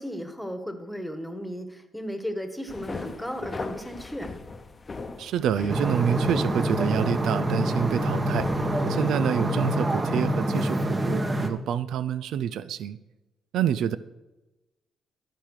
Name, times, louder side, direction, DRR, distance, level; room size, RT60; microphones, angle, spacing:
voice 1, 0.0-4.4, equal, ahead, 6 dB, 1.5 m, -35 dB
sound 1, 2.7-8.9, left 3 dB, 30° left, 0.9 m, -39 dB
voice 2, 5.2-8.5 8.8-13.0 13.5-14.0, right 9 dB, 80° right, 15 dB, 0.4 m, -27 dB
sound 2, 5.7-11.5, right 1 dB, 25° right, 1.2 m, -26 dB
14.0 x 5.0 x 6.4 m, 1.0 s
cardioid pair, 95°, 0 cm